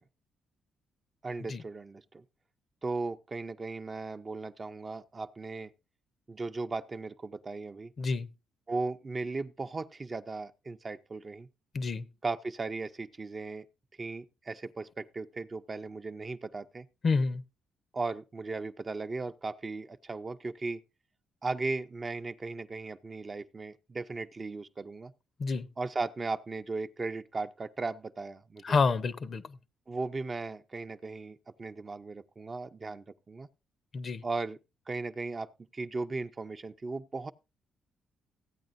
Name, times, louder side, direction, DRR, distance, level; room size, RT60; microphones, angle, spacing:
voice 1, 1.2-2.2 2.8-5.7 6.3-7.9 8.7-11.5 12.2-13.7 14.0-16.9 17.9-20.8 21.4-25.1 25.8-28.8 29.9-33.5 34.2-34.6 34.9-37.3, right 3 dB, 30° right, 0.6 m, -37 dB
voice 2, 8.0-8.3 11.7-12.1 17.0-17.4 25.4-25.7 28.6-29.6 33.9-34.2, left 4 dB, 45° left, 0.7 m, -28 dB
15.0 x 8.7 x 2.6 m
cardioid pair, 90°, 0 cm